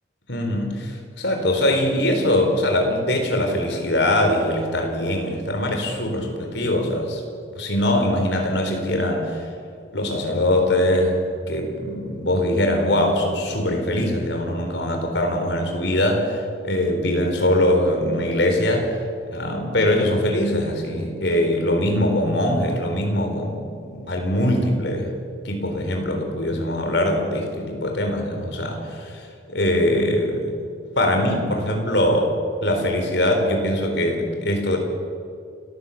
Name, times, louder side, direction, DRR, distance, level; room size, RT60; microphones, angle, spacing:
voice 1, 0.3-7.2 7.6-9.4 9.9-11.2 11.5-18.9 19.3-25.1 25.4-29.2 29.5-30.5 31.0-32.3 32.6-34.8, left 1 dB, 75° left, 3 dB, 4.3 m, -22 dB
29.0 x 14.5 x 7.2 m, 2.4 s
head